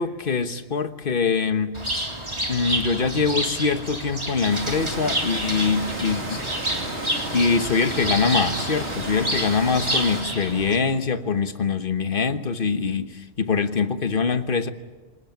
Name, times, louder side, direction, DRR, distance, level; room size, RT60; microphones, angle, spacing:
voice 1, 0.0-1.8 2.5-6.4 7.3-13.1 13.4-14.7, left 5 dB, 55° left, 9 dB, 1.4 m, -23 dB
Bird, 1.7-10.8, right 1 dB, 25° right, 3.3 m, -29 dB
sound 1, 4.5-10.2, right 2 dB, 85° right, 3.4 m, -33 dB
26.0 x 19.5 x 9.2 m, 1.3 s
omnidirectional pair, 1.1 m